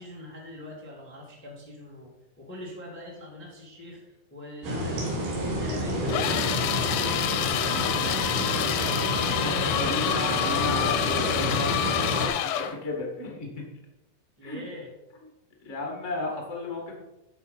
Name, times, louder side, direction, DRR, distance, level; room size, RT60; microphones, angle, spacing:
voice 1, 0.0-5.1 5.4-7.2 7.5-9.0 14.4-14.9, left 1 dB, 10° left, -3 dB, 0.8 m, -43 dB
sound 1, 4.6-12.3, equal, 70° right, 4.7 m, -29 dB
sound 2, 6.1-12.8, left 11 dB, 85° left, 2.8 m, -27 dB
voice 2, 9.4-13.6 14.4-14.6 15.6-17.0, left 2 dB, 40° left, 0 dB, 1.0 m, -34 dB
12.5 x 5.0 x 5.5 m, 0.98 s
omnidirectional pair, 5.1 m